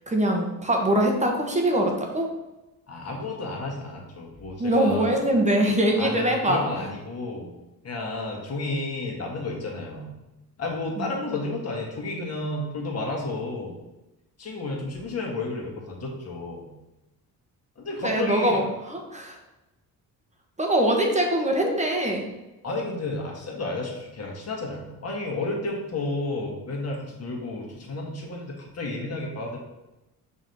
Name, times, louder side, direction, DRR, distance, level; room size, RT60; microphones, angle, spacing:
voice 1, 0.1-2.3 4.6-6.9 11.0-11.1 18.0-19.4 20.6-22.3, right 1 dB, 20° right, 2 dB, 1.1 m, -23 dB
voice 2, 2.9-5.2 6.0-7.6 7.8-10.1 10.6-13.8 14.4-16.7 17.8-18.6 22.6-29.6, left 2 dB, 40° left, -1 dB, 1.8 m, -32 dB
6.2 x 3.1 x 5.4 m, 0.98 s
cardioid pair, 105°, 38 cm